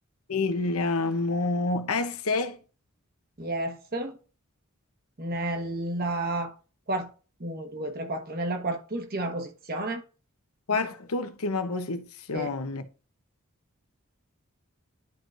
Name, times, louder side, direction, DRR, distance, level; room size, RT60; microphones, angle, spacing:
voice 1, 0.3-2.6 10.7-12.9, left 3 dB, 80° left, 0.9 m, -28 dB
voice 2, 3.4-4.2 5.2-6.6 6.9-7.1 7.4-10.0 12.3-12.5, right 1 dB, 45° right, 1.3 m, -31 dB
10.5 x 4.7 x 2.6 m
head